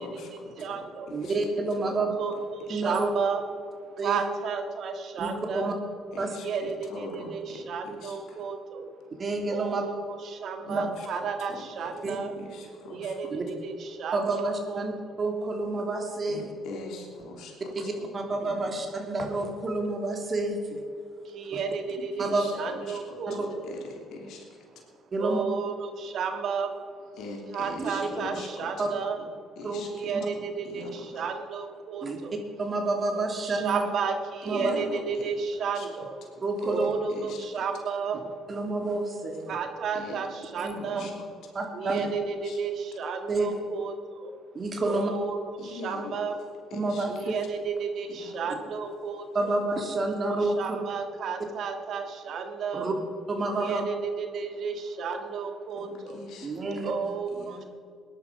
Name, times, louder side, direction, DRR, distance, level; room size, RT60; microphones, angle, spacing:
voice 1, 0.0-1.4 1.8-2.1 2.8-3.0 6.1-8.4 10.6-11.1 11.5-12.0 12.4-13.2 16.3-18.6 21.4-21.5 22.1-24.5 24.7-24.8 27.2-28.7 29.1-29.2 29.6-31.2 34.5-35.3 35.7-35.9 36.6-36.8 37.1-37.4 39.9-40.2 40.7-41.1 42.4-42.6 45.6-46.2 46.7-47.3 48.1-48.4 55.8-57.7, left 3 dB, 70° left, 1 dB, 3.1 m, -42 dB
voice 2, 0.6-1.1 1.8-5.7 6.4-8.9 9.5-12.3 12.9-14.8 21.2-23.7 25.2-26.7 27.5-29.2 29.9-32.3 33.4-36.1 36.7-38.4 39.5-41.1 41.7-44.3 44.9-46.4 47.1-49.5 50.3-52.9 53.6-56.2 56.8-57.6, right 5 dB, 60° right, 6 dB, 1.7 m, -33 dB
voice 3, 1.1-2.1 2.7-3.1 4.0-4.2 5.2-5.7 6.2-6.3 9.2-9.8 10.7-10.8 12.0-12.2 13.3-13.4 14.1-16.4 17.7-20.8 21.5-21.6 22.2-22.4 23.3-23.5 25.1-25.4 27.8-27.9 28.8-28.9 29.6-29.8 30.1-30.3 32.0-32.2 32.6-33.9 34.5-34.7 36.4-36.9 38.5-39.4 40.6-41.1 41.5-42.0 43.3-43.6 44.5-45.1 46.7-47.3 49.3-50.8 52.7-52.9 53.3-53.8 56.4-56.9, right 2 dB, 40° right, 2 dB, 3.0 m, -29 dB
20.0 x 10.5 x 5.1 m, 2.2 s
hypercardioid pair, 55°, 0 cm